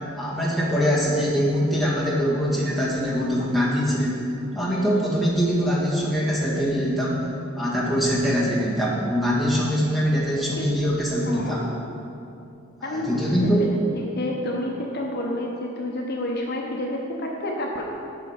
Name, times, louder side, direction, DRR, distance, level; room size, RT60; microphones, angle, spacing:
voice 1, 0.1-4.2 4.5-7.2 7.6-11.6 12.8-13.7, equal, ahead, -7 dB, 1.8 m, -23 dB
voice 2, 11.2-11.6 12.8-13.3 13.6-17.8, left 1 dB, 50° left, 0 dB, 0.9 m, -29 dB
8.1 x 6.4 x 5.7 m, 2.7 s
head